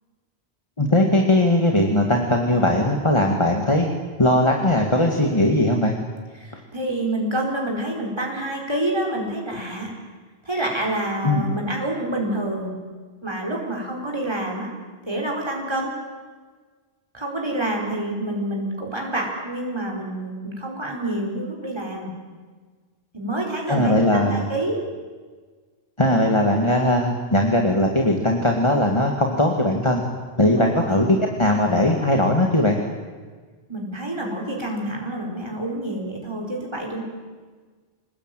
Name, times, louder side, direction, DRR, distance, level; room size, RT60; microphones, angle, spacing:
voice 1, 0.8-3.9 4.2-5.9 11.2-11.4 23.7-24.4 26.0-30.0 30.4-32.8, left 1 dB, 25° left, 1 dB, 2.3 m, -19 dB
voice 2, 6.3-9.9 10.4-12.7 13.2-14.7 15.1-15.9 17.1-22.1 23.1-24.9 30.6-31.0 33.7-37.0, right 1 dB, 25° right, -1 dB, 4.6 m, -27 dB
27.5 x 20.0 x 9.2 m, 1.5 s
omnidirectional pair, 1.1 m